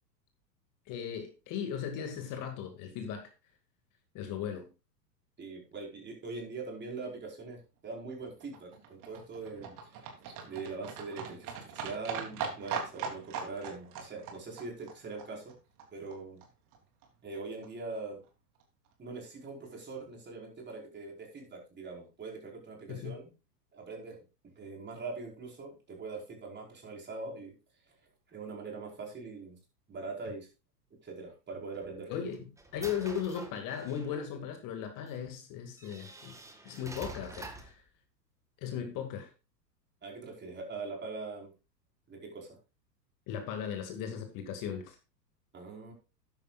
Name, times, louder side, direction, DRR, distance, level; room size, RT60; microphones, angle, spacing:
voice 1, 0.9-3.3 4.1-4.7 22.9-23.1 32.1-32.4 32.7-36.3 36.6-37.8 38.6-39.3 43.3-45.0, left 8 dB, 40° left, 2.3 m, -37 dB
voice 2, 5.4-15.5 15.9-16.4 17.2-18.2 19.0-23.2 23.7-24.2 24.4-27.5 28.3-29.5 29.9-30.5 31.0-32.1 40.0-41.5 42.1-42.6 45.5-45.9, right 3 dB, 20° right, 4.9 m, -42 dB
Livestock farm animals working animals, 7.9-16.2 16.4-16.5 16.7-16.8 17.0-17.1 17.3-17.4 17.6-17.7 18.0-18.1 18.3-18.4 18.6-18.7, right 6 dB, 40° right, 3.3 m, -41 dB
sound 1, 31.7-34.2 35.1-35.2 35.8-37.8, right 2 dB, 5° right, 1.7 m, -47 dB
13.0 x 10.5 x 2.5 m
hypercardioid pair, 100°, 49 cm